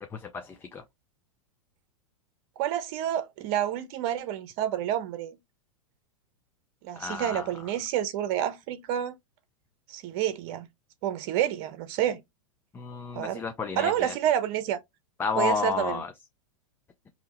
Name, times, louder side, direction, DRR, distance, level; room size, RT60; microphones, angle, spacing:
voice 1, 0.3-0.8 7.0-7.5 12.7-14.1 15.2-16.1, left 5 dB, 15° left, 0.4 m, -31 dB
voice 2, 2.6-5.4 6.8-9.1 9.9-10.7 11.0-12.2 13.1-13.4 13.8-14.8 15.4-16.0, right 11 dB, 45° right, 0.9 m, -29 dB
3.4 x 2.9 x 3.1 m
hypercardioid pair, 125°, 17 cm